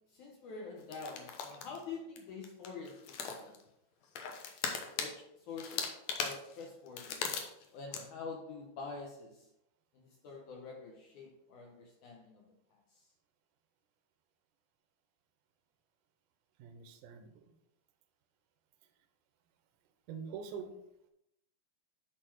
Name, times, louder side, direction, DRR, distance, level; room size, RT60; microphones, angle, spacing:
voice 1, 0.1-3.6 4.9-5.9 6.2-7.3 7.7-9.4 9.9-12.5, left 4 dB, 70° left, 0 dB, 1.9 m, -46 dB
sound 1, 0.9-1.8 2.2-2.3 2.4-3.6 4.1-5.1 5.6-7.7 7.9-8.0, left 6 dB, 90° left, 1.5 m, -38 dB
voice 2, 16.6-17.5 20.1-20.7, right 6 dB, 75° right, 6 dB, 2.0 m, -45 dB
10.5 x 4.2 x 4.6 m, 0.82 s
omnidirectional pair, 4.6 m